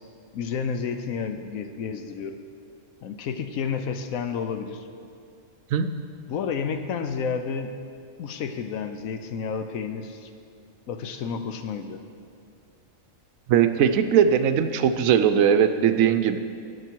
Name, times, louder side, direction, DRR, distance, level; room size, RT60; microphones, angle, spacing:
voice 1, 0.3-2.4 3.0-4.8 6.3-7.7 8.2-10.3 10.9-12.0, left 6 dB, 85° left, 8 dB, 1.1 m, -30 dB
voice 2, 13.5-16.4, right 8 dB, 80° right, 10 dB, 1.0 m, -20 dB
13.0 x 8.6 x 4.5 m, 2.4 s
omnidirectional pair, 1.4 m